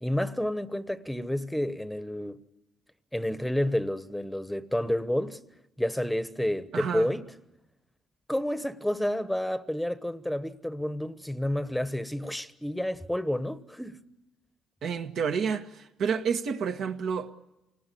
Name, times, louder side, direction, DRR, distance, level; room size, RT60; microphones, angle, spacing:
voice 1, 0.0-2.4 3.1-5.4 5.8-7.2 8.3-14.0, left 1 dB, 5° left, 1.1 m, -30 dB
voice 2, 6.7-7.1 14.8-17.3, right 6 dB, 70° right, 1.7 m, -29 dB
28.5 x 19.5 x 8.5 m
cardioid pair, 90°, 0 cm